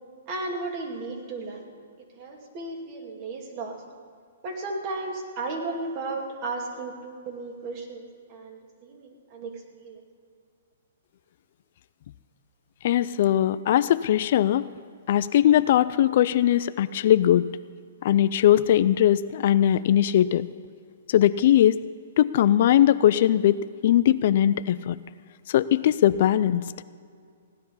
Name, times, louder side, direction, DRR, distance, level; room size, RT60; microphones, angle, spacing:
voice 1, 0.3-1.6 2.2-3.8 4.4-10.0, right 3 dB, 40° right, 1 dB, 2.4 m, -34 dB
voice 2, 12.8-14.7 15.1-17.5 18.0-20.5 21.1-21.8 22.2-25.0 25.5-26.7, left 11 dB, 55° left, 15 dB, 0.4 m, -20 dB
16.5 x 10.5 x 5.6 m, 2.2 s
hypercardioid pair, 145°, 0 cm